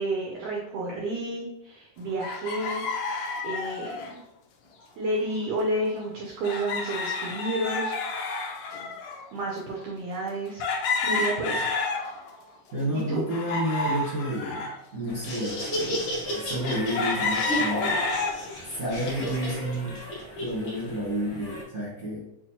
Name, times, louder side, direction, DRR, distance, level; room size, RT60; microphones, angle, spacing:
voice 1, 0.0-2.9 3.4-4.0 5.0-7.9 9.3-10.6 11.0-11.7 12.9-13.2, right 1 dB, 85° right, -2 dB, 1.4 m, -30 dB
sound 1, 2.2-4.1 5.3-5.4 5.7-5.8 6.4-9.2 9.8-9.9 10.6-12.3 12.8-14.7 15.4-15.5 16.6-18.4 18.9-19.3, left 3 dB, 85° left, 1.5 m, -30 dB
voice 2, 12.7-18.0 18.6-20.0 20.4-22.3, equal, 50° right, -9 dB, 0.8 m, -31 dB
Laughter, 15.1-21.6, equal, 65° left, 1.2 m, -33 dB
5.8 x 2.4 x 2.9 m, 0.89 s
omnidirectional pair, 3.8 m